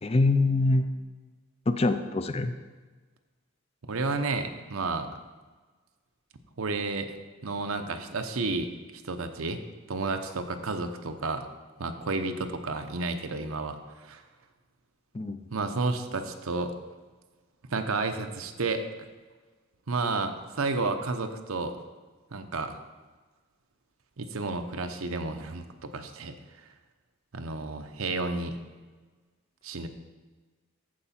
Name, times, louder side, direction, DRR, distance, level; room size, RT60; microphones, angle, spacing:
voice 1, 0.0-0.9 1.7-2.5 15.1-15.4, left 2 dB, 30° left, 9 dB, 0.4 m, -24 dB
voice 2, 3.8-5.1 6.6-7.2 7.4-9.6 9.9-11.4 11.8-14.2 15.5-16.7 17.7-18.9 19.9-21.8 22.3-22.8 24.2-26.7 27.3-28.6 29.6-29.9, right 3 dB, 85° right, 7 dB, 0.8 m, -31 dB
14.0 x 4.8 x 4.3 m, 1.3 s
head